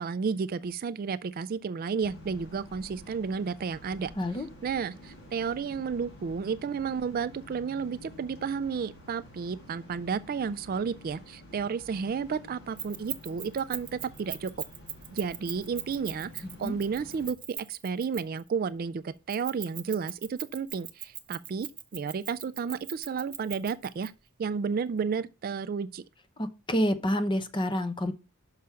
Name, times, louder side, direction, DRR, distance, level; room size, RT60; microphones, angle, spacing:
voice 1, 0.0-4.1 4.6-14.5 15.1-24.1 24.4-26.0, right 6 dB, 40° right, 0.3 m, -32 dB
sound 1, 2.0-17.3, left 1 dB, 55° left, 2.5 m, -50 dB
voice 2, 4.2-4.5 16.4-16.8 26.4-28.1, equal, 20° left, 0.7 m, -28 dB
Keys jangling, 12.8-18.5 19.3-24.1, right 10 dB, 20° right, 0.9 m, -39 dB
6.3 x 5.6 x 5.7 m
head